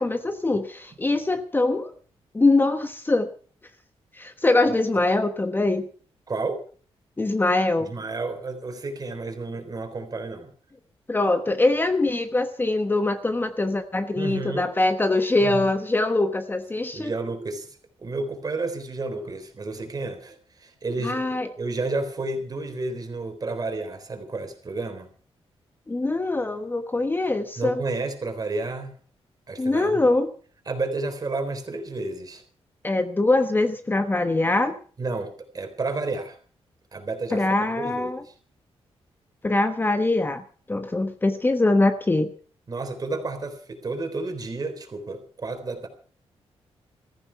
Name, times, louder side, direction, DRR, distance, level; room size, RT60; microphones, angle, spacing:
voice 1, 0.0-1.9 2.3-3.3 4.1-5.9 7.2-7.9 11.1-17.1 21.0-21.5 25.9-27.8 29.6-30.3 32.8-34.7 37.3-38.2 39.4-42.3, left 2 dB, 20° left, 9 dB, 1.1 m, -23 dB
voice 2, 6.3-6.6 7.8-10.5 14.1-14.7 15.4-15.7 16.9-25.1 27.6-29.0 29.5-30.1 30.7-32.4 35.0-36.4 36.9-38.3 42.7-45.9, right 3 dB, 35° right, 6 dB, 3.8 m, -31 dB
15.5 x 14.5 x 5.8 m, 0.43 s
cardioid pair, 100°, 10 cm